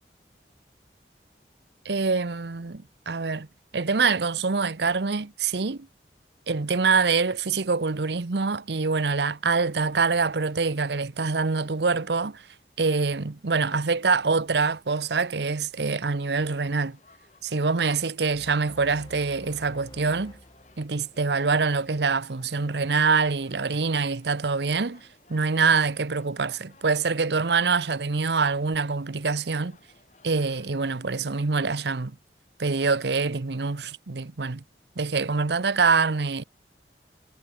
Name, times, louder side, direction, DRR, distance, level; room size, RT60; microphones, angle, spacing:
voice 1, 1.8-3.5 3.7-5.9 6.5-12.4 12.8-17.0 17.4-20.3 20.8-29.8 30.2-32.2 32.6-34.6 35.0-36.4, right 4 dB, 75° right, 0.9 m, -25 dB
sound 1, 16.8-31.4, left 3 dB, 40° left, 3.3 m, -59 dB
sound 2, 18.3-21.6, equal, 25° left, 4.0 m, -49 dB
head